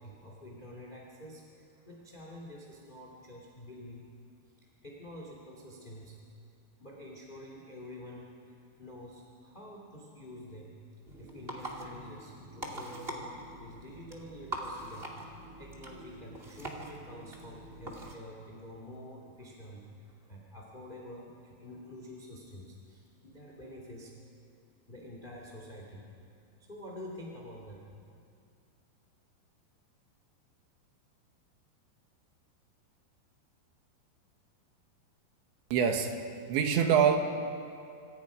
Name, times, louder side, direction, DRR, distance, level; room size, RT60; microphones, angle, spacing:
voice 1, 0.0-4.1 4.4-4.5 4.8-6.2 6.8-24.1 24.9-26.0 26.6-27.8, left 1 dB, 15° left, -2 dB, 1.8 m, -48 dB
sound 1, 11.0-18.1, right 1 dB, 25° right, 1.3 m, -43 dB
voice 2, 35.7-36.2 36.5-37.2, right 7 dB, 80° right, 5 dB, 3.8 m, -24 dB
26.0 x 26.0 x 5.1 m, 2.4 s
omnidirectional pair, 5.2 m